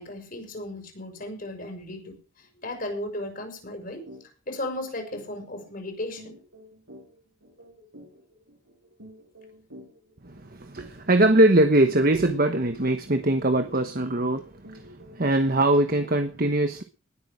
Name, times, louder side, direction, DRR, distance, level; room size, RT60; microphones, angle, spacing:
voice 1, 0.0-4.0 4.5-6.4, left 1 dB, 45° left, 6.0 m, -35 dB
sound 1, 4.1-4.2 4.6-4.7 5.1-15.3, equal, 90° right, 6.6 m, -50 dB
voice 2, 10.2-16.8, right 1 dB, 45° right, 1.2 m, -22 dB
20.0 x 8.7 x 5.0 m
head